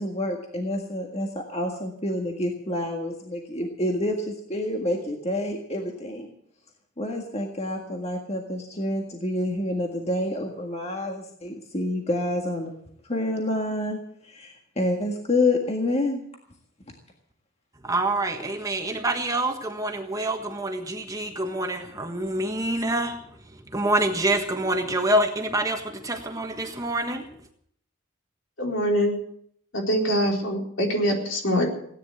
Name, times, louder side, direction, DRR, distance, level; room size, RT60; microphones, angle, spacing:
voice 1, 0.0-6.3 7.0-12.7 13.0-16.2, left 1 dB, 30° left, 2 dB, 1.7 m, -28 dB
voice 2, 17.8-27.3, right 1 dB, 15° right, 4 dB, 1.4 m, -26 dB
voice 3, 28.6-29.2 29.7-31.7, equal, 65° left, 1 dB, 4.2 m, -24 dB
17.5 x 10.0 x 8.0 m, 0.67 s
head